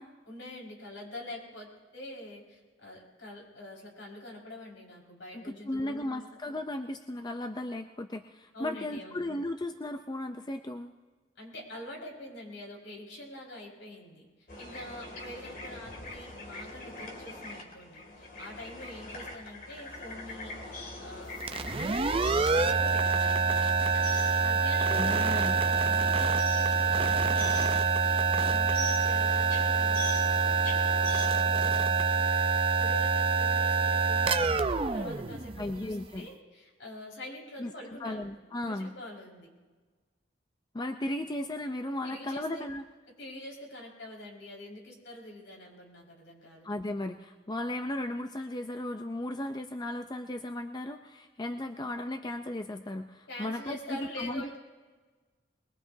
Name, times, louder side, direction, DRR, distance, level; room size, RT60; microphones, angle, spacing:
voice 1, 0.3-6.3 8.5-9.2 11.4-14.3 14.6-21.5 22.2-23.4 24.4-30.3 30.7-32.3 32.8-38.3 38.6-39.5 42.0-42.6 43.2-46.6 53.3-54.6, left 1 dB, 75° left, -1 dB, 5.0 m, -45 dB
voice 2, 5.3-10.9 24.9-25.6 35.6-36.3 37.6-37.7 38.0-38.9 40.7-42.8 46.6-54.6, left 1 dB, 20° left, 6 dB, 0.5 m, -35 dB
sound 1, 14.5-31.3, left 2 dB, 50° left, 2.5 m, -43 dB
sound 2, 21.4-36.0, right 5 dB, 30° right, 0.6 m, -26 dB
23.0 x 21.0 x 2.7 m, 1.4 s
head